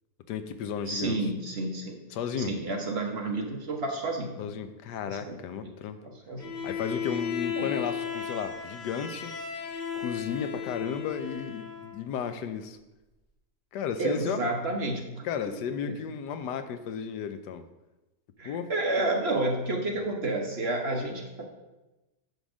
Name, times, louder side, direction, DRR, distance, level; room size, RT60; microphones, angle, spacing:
voice 1, 0.3-1.2 2.1-2.5 4.4-6.0 6.6-9.3 9.9-12.8 13.7-14.4 15.2-17.6 18.4-18.7, left 7 dB, 85° left, 10 dB, 1.3 m, -34 dB
voice 2, 0.9-2.0 2.4-4.4 5.1-5.4 5.6-5.7 6.0-6.5 7.6-7.7 14.0-16.0 18.4-21.4, right 2 dB, 45° right, 1 dB, 1.0 m, -30 dB
Bowed string instrument, 6.4-12.0, left 7 dB, 35° left, 1.0 m, -35 dB
9.3 x 3.5 x 6.1 m, 1.0 s
omnidirectional pair, 1.8 m